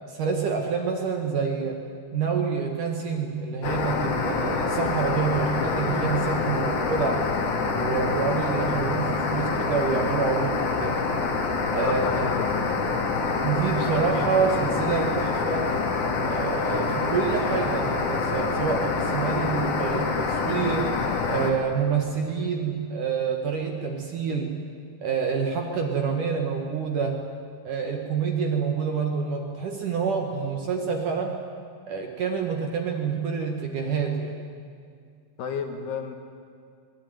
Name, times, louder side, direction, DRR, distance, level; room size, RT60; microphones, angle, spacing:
voice 1, 0.1-1.8 2.1-7.2 7.7-11.0 11.7-12.3 13.2-15.7 16.2-21.0 21.3-24.6 25.0-27.3 27.6-31.4 31.9-34.3, right 5 dB, 55° right, 2 dB, 2.6 m, -27 dB
sound 1, 3.6-21.5, left 4 dB, 50° left, 2.9 m, -26 dB
voice 2, 11.6-12.8 35.4-36.1, left 6 dB, 65° left, 5 dB, 3.3 m, -31 dB
22.0 x 20.5 x 9.5 m, 2.3 s
omnidirectional pair, 5.3 m